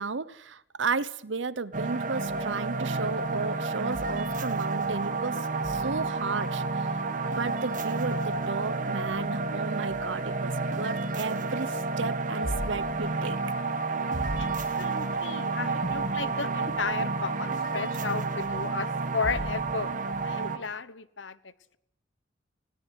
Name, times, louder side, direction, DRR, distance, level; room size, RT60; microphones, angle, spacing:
voice 1, 0.0-7.0 7.4-13.4, right 4 dB, 75° right, 0.9 m, -34 dB
sound 1, 1.7-20.6, right 3 dB, 45° right, 1.9 m, -30 dB
voice 2, 14.8-19.9 20.2-21.8, left 5 dB, 75° left, 1.1 m, -34 dB
20.0 x 18.0 x 9.5 m
head